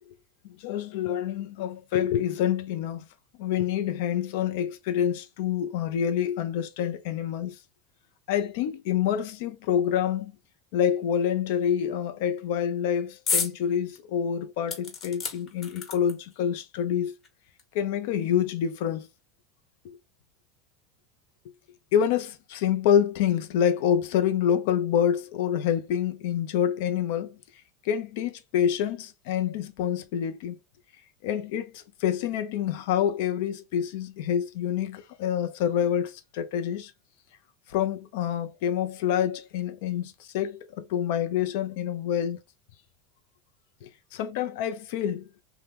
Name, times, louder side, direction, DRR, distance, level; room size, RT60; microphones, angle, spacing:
voice 1, 0.4-3.0 3.4-7.6 8.3-10.3 10.7-17.1 17.7-19.1 19.8-20.0 21.9-27.4 27.8-30.6 31.2-36.9 37.7-42.4 43.8-45.3, left 9 dB, 70° left, 0.5 m, -27 dB
sound 1, 13.3-13.6 14.0-14.1 14.7-16.3 17.2-17.3 17.6-17.7, left 5 dB, 40° left, 1.0 m, -30 dB
2.8 x 2.2 x 3.3 m
supercardioid pair, 110°, 0 cm